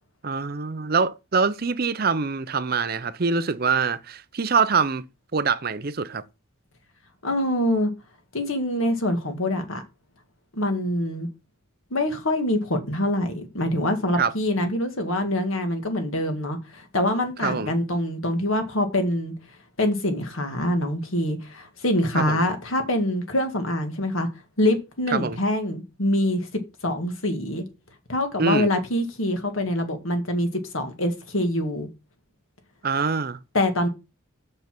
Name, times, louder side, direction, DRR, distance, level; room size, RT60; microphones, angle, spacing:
voice 1, 0.2-5.0 5.3-6.2 14.2-14.3 17.4-17.7 22.1-22.4 25.1-25.4 28.4-28.7 32.8-33.4, right 5 dB, 45° right, 0.6 m, -24 dB
voice 2, 7.2-7.9 8.3-9.8 10.5-11.3 11.9-19.3 19.8-24.3 24.6-27.6 28.1-30.5 30.7-31.9 33.5-33.9, left 1 dB, 75° left, 1.9 m, -25 dB
6.7 x 5.4 x 6.0 m
head